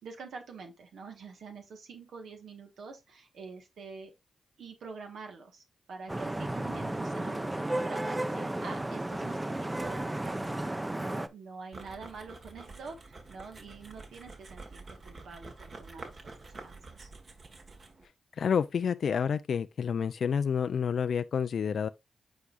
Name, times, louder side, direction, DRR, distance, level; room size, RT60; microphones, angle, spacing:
voice 1, 0.0-4.1 4.6-10.6 11.0-17.1, right 4 dB, 85° right, 1.4 m, -46 dB
Vehicle horn car horn honking / Traffic noise roadway noise, 6.1-11.3, right 1 dB, 20° right, 0.6 m, -33 dB
sound 1, 11.7-18.0, right 3 dB, 55° right, 1.6 m, -48 dB
voice 2, 18.4-21.9, left 7 dB, 75° left, 0.3 m, -29 dB
8.4 x 4.7 x 2.5 m
cardioid pair, 60°, 0 cm